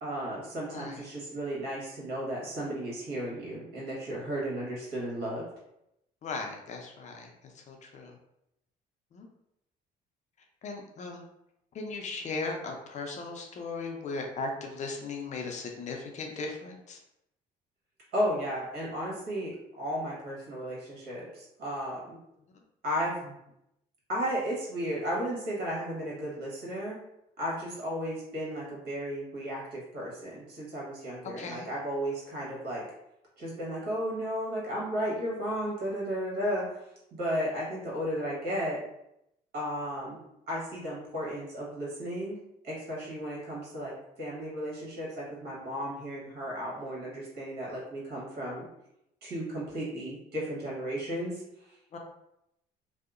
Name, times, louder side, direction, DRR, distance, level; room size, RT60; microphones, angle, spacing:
voice 1, 0.0-5.4 18.1-22.2 22.8-23.3 24.1-27.0 27.4-32.8 33.4-36.8 37.1-38.8 39.5-40.2 40.5-42.4 42.6-43.9 44.2-48.6 49.2-51.4, equal, 70° right, -5 dB, 1.3 m, -34 dB
voice 2, 0.7-1.0 6.2-7.3 7.5-8.1 9.1-9.3 10.6-11.2 11.7-17.0 31.4-31.7 51.9-52.0, left 3 dB, 45° left, 2 dB, 0.5 m, -37 dB
2.7 x 2.0 x 2.4 m, 0.82 s
cardioid pair, 110°, 17 cm